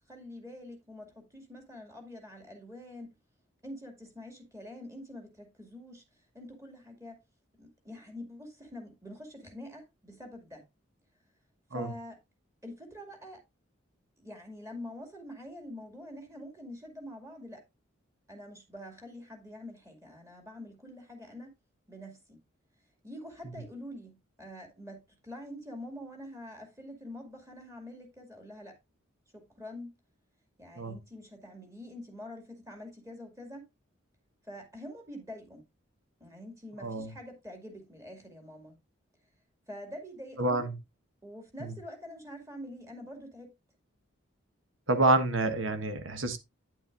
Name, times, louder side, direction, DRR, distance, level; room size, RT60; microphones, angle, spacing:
voice 1, 0.1-3.1 3.6-6.0 6.3-7.2 7.6-10.7 11.7-12.2 12.6-13.4 14.2-17.6 18.3-21.5 21.9-22.4 23.0-28.8 29.3-29.9 30.6-33.7 34.4-35.6 36.2-38.8 39.7-40.7 41.2-43.5, left 1 dB, 15° right, 2.3 m, -45 dB
voice 2, 36.8-37.1 40.4-40.8 41.6-41.7 44.9-46.4, right 2 dB, 70° right, 1.4 m, -28 dB
9.4 x 8.0 x 2.5 m
head